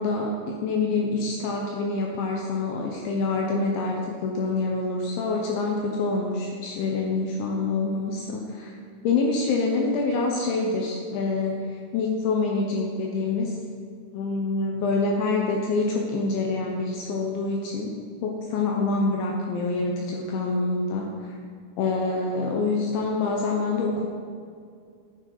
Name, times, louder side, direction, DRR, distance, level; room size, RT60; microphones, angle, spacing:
voice 1, 0.0-8.8 9.0-11.6 11.9-13.5 14.1-17.9 18.2-21.3 21.8-24.1, left 3 dB, 75° left, 0 dB, 2.9 m, -26 dB
10.5 x 7.3 x 3.9 m, 2.3 s
omnidirectional pair, 5.9 m